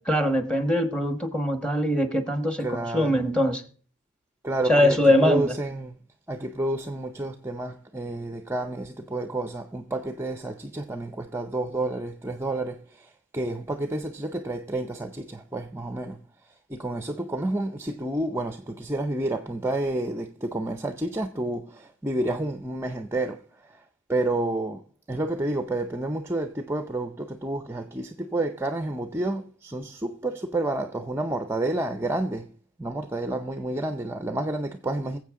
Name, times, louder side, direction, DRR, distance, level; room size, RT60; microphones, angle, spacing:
voice 1, 0.0-2.7 2.9-3.6 4.7-5.5, left 1 dB, 5° left, 1.3 m, -22 dB
voice 2, 2.6-3.3 4.4-6.0 6.3-23.8 24.1-32.5 32.8-35.2, right 2 dB, 10° right, 0.5 m, -30 dB
22.0 x 7.7 x 3.7 m
head